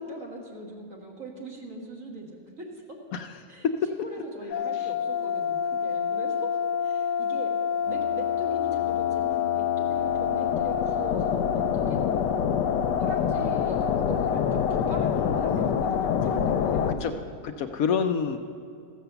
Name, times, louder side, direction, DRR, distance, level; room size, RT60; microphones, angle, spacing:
voice 1, 0.0-2.7 3.5-7.5 7.9-12.0 13.0-17.2, right 1 dB, 50° right, -2 dB, 1.9 m, -40 dB
sound 1, 4.5-16.9, left 8 dB, 90° left, 1.3 m, -26 dB
voice 2, 17.4-18.4, left 7 dB, 70° left, 7 dB, 0.9 m, -26 dB
14.5 x 7.4 x 6.8 m, 2.4 s
omnidirectional pair, 1.8 m